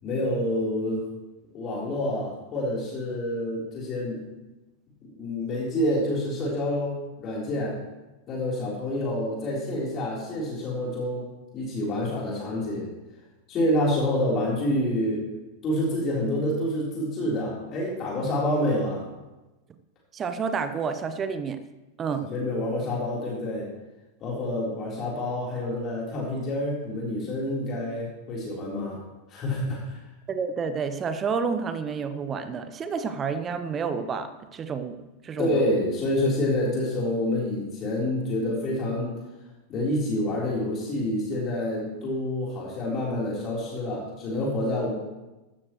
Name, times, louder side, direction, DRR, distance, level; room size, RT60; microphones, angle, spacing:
voice 1, 0.0-1.0 1.5-4.2 5.0-7.7 8.3-11.3 11.5-12.9 13.5-15.2 15.6-19.0 22.3-23.7 24.2-29.0 29.3-30.0 35.4-39.1 39.7-44.9, left 1 dB, 30° left, -5 dB, 3.9 m, -27 dB
voice 2, 20.1-21.6 22.0-22.3 30.3-35.0 35.2-35.6, right 5 dB, 25° right, 10 dB, 1.0 m, -29 dB
15.0 x 13.0 x 3.2 m, 1.1 s
figure-of-eight pair, 90°, 0 cm